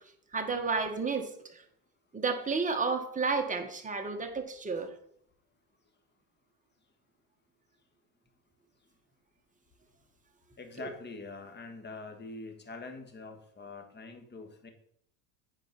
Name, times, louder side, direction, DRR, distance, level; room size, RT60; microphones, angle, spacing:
voice 1, 0.3-1.6 2.1-4.9 10.8-10.9, right 4 dB, 15° right, 4 dB, 1.6 m, -31 dB
voice 2, 10.6-14.7, left 3 dB, 25° left, 4 dB, 1.8 m, -44 dB
9.0 x 4.7 x 6.1 m, 0.70 s
supercardioid pair, 95°, 45 cm